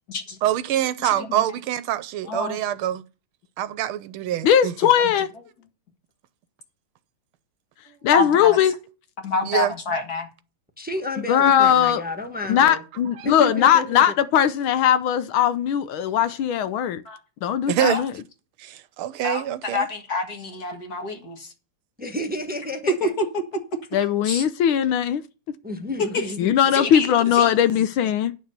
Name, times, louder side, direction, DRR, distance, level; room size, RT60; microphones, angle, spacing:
voice 1, 0.4-3.0 3.6-4.7 7.9-8.0 9.4-9.7 13.2-13.3 17.7-18.0 18.6-19.9, right 12 dB, 80° right, 1.5 m, -25 dB
voice 2, 1.0-1.4 2.3-2.6 8.1-8.6 9.2-10.3 15.4-15.5 17.1-17.2 17.8-18.0 19.2-21.5 22.9-23.9 24.2-24.4 26.1-26.3 26.7-27.8, left 2 dB, 45° left, 2.0 m, -27 dB
voice 3, 4.4-5.3 8.0-8.7 11.3-12.0 12.5-17.0 17.4-18.1 23.9-25.2 26.4-28.3, left 9 dB, 75° left, 1.5 m, -19 dB
voice 4, 10.8-12.8 13.2-14.2 22.0-23.1 25.6-26.5, left 1 dB, 5° right, 1.1 m, -31 dB
9.5 x 6.5 x 6.7 m
omnidirectional pair, 2.4 m